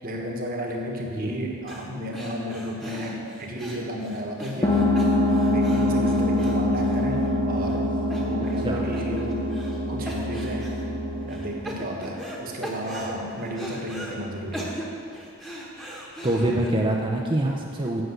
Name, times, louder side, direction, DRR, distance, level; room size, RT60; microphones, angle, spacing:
voice 1, 0.0-5.0 5.5-9.5 9.9-10.7 11.2-14.8, equal, 45° right, 0 dB, 1.3 m, -33 dB
voice 2, 1.1-1.5 8.6-8.9 16.2-18.0, right 1 dB, 25° right, -1 dB, 0.6 m, -25 dB
sound 1, 1.7-1.9 2.1-7.3 7.6-7.8 8.1-8.7 8.9-9.8 10.1-10.8 11.3-12.4 12.6-14.1 14.5-16.7, equal, ahead, 1.2 m, -39 dB
sound 2, 4.6-12.8, left 1 dB, 20° left, 0.8 m, -25 dB
7.8 x 6.5 x 7.9 m, 2.5 s
head